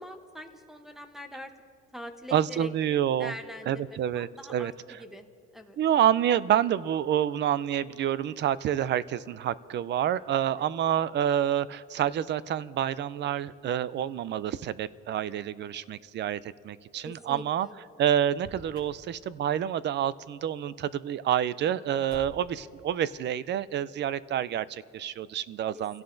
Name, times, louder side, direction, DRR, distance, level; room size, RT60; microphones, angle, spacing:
voice 1, 0.0-1.5 1.9-2.7 3.2-4.7 5.0-5.2 5.5-5.8 17.0-17.7 21.6-21.8 25.7-26.0, equal, ahead, 6 dB, 0.9 m, -43 dB
voice 2, 2.3-3.3 3.7-5.0 5.8-17.7 18.0-26.0, right 10 dB, 40° right, 18 dB, 0.4 m, -28 dB
Motor vehicle (road), 18.3-19.0 22.1-22.6, equal, 15° right, 4.7 m, -47 dB
29.5 x 17.0 x 2.6 m, 2.6 s
cardioid pair, 155°, 30 cm